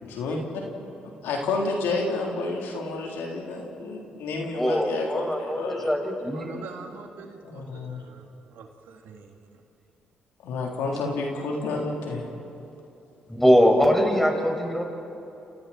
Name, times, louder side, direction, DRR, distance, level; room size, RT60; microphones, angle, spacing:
voice 1, 0.0-0.4 1.2-5.9 7.4-8.0 10.4-12.3, left 3 dB, 75° left, -1 dB, 3.8 m, -30 dB
voice 2, 4.5-6.6 13.3-14.8, equal, 5° left, 1 dB, 5.9 m, -22 dB
voice 3, 6.3-9.6, right 5 dB, 75° right, 3 dB, 2.3 m, -45 dB
30.0 x 28.0 x 4.5 m, 2.9 s
hypercardioid pair, 50°, 4 cm